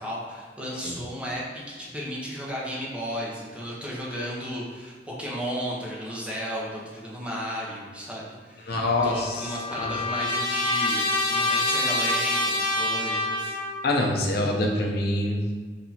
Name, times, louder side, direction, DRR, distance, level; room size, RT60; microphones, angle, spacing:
voice 1, 0.0-13.6, equal, 5° right, -5 dB, 0.9 m, -34 dB
voice 2, 8.7-9.5 9.8-9.9 13.8-15.5, left 1 dB, 60° left, 0 dB, 0.7 m, -25 dB
Trumpet, 9.0-13.9, left 2 dB, 30° left, 0.8 m, -26 dB
6.0 x 2.9 x 2.8 m, 1.5 s
head